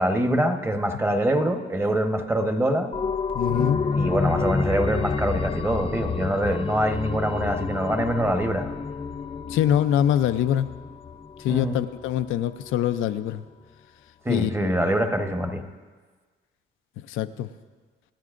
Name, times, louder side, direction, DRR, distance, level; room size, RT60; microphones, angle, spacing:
voice 1, 0.0-2.9 3.9-8.7 11.5-11.7 14.2-15.6, right 1 dB, 10° right, 6 dB, 1.1 m, -24 dB
sound 1, 2.9-12.3 12.6-12.7, left 5 dB, 25° left, 0.6 m, -29 dB
voice 2, 3.3-3.8 9.5-10.7 11.4-13.4 14.3-14.7 17.1-17.5, left 10 dB, 85° left, 9 dB, 0.5 m, -24 dB
26.5 x 9.5 x 2.5 m, 1.4 s
cardioid pair, 90°, 20 cm